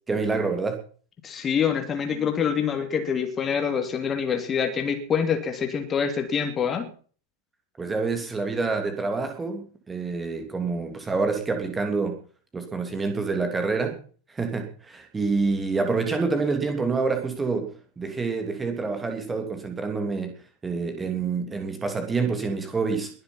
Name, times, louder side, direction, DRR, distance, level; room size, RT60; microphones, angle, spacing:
voice 1, 0.1-0.8 7.8-12.2 12.5-14.0 14.3-20.3 20.6-23.1, right 4 dB, 15° right, 5 dB, 3.0 m, -27 dB
voice 2, 1.2-6.9, left 7 dB, 20° left, 5 dB, 2.9 m, -26 dB
22.0 x 7.5 x 5.7 m, 0.42 s
figure-of-eight pair, 90°, 0 cm